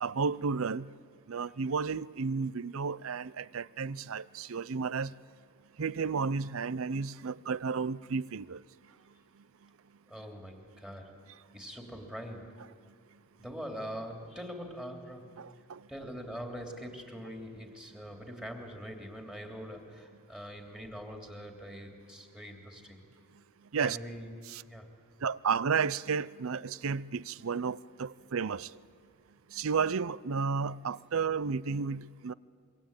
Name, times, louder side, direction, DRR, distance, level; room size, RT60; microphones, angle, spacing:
voice 1, 0.0-0.9 1.3-5.1 5.8-8.6 15.4-15.8 23.7-24.0 24.5-24.6 25.2-28.7 29.5-32.3, right 5 dB, 65° right, 0.6 m, -32 dB
voice 2, 10.1-11.2 11.5-12.6 13.4-15.4 15.9-23.0 23.8-24.9, equal, 5° right, 3.0 m, -43 dB
26.0 x 23.0 x 8.9 m
head